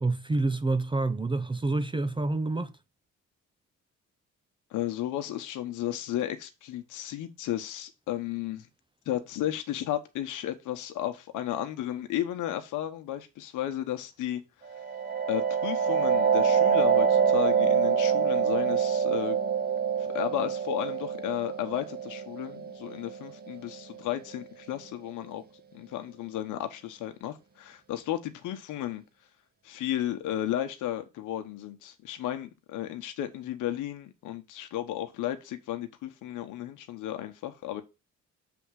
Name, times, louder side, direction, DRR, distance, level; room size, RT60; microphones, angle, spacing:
voice 1, 0.0-2.7, right 2 dB, 15° right, 0.5 m, -28 dB
voice 2, 4.7-8.7 9.1-14.4 15.3-19.4 20.1-25.4 25.7-29.0 29.6-37.8, left 12 dB, 90° left, 1.1 m, -34 dB
sound 1, 14.7-24.2, right 7 dB, 30° right, 1.2 m, -26 dB
7.0 x 3.5 x 6.3 m
cardioid pair, 90°, 30 cm